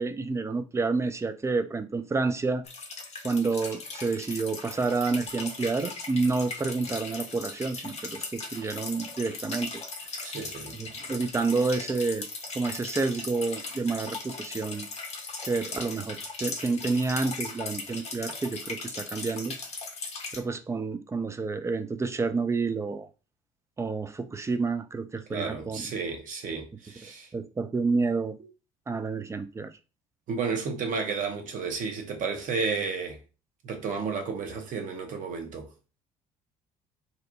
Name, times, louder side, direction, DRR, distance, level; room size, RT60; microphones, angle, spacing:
voice 1, 0.0-2.6 3.2-9.8 10.7-12.3 12.5-14.9 15.4-19.6 20.3-23.1 23.8-25.9 27.0-28.3 28.9-29.7, right 4 dB, 15° right, 0.4 m, -29 dB
sound 1, 2.6-20.4, left 3 dB, 40° left, 0.8 m, -38 dB
voice 2, 10.2-10.7 25.3-27.3 30.3-33.2 33.6-35.7, right 5 dB, 45° right, 0.7 m, -32 dB
2.7 x 2.0 x 2.6 m
figure-of-eight pair, 55°, 18 cm